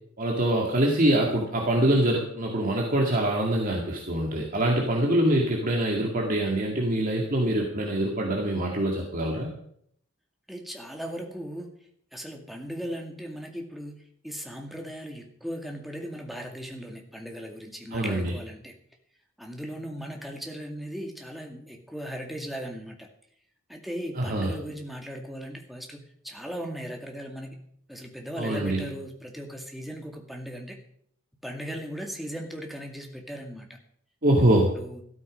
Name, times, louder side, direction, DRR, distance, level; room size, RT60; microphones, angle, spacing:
voice 1, 0.2-9.5 17.9-18.3 24.2-24.5 28.4-28.9 34.2-34.7, right 1 dB, 40° right, -1 dB, 2.1 m, -24 dB
voice 2, 10.5-11.7 12.1-18.7 19.4-23.1 23.7-27.6 27.9-30.8 31.4-33.8 34.4-35.0, equal, ahead, 2 dB, 2.1 m, -38 dB
14.0 x 13.0 x 5.2 m, 0.66 s
head